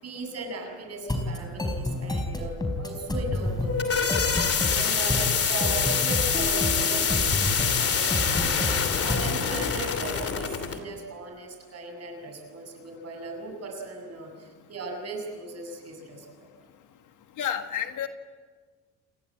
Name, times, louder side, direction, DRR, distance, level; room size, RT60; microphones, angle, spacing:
voice 1, 0.0-4.3 4.7-7.4 7.7-16.3, right 2 dB, 45° right, 3 dB, 7.6 m, -38 dB
sound 1, 1.0-9.4, left 1 dB, 10° left, 4.4 m, -30 dB
sound 2, 3.5-10.8, left 6 dB, 40° left, 2.9 m, -26 dB
voice 2, 17.4-18.1, left 9 dB, 55° left, 7 dB, 1.9 m, -30 dB
29.5 x 19.5 x 8.8 m, 1.5 s
cardioid pair, 135°, 36 cm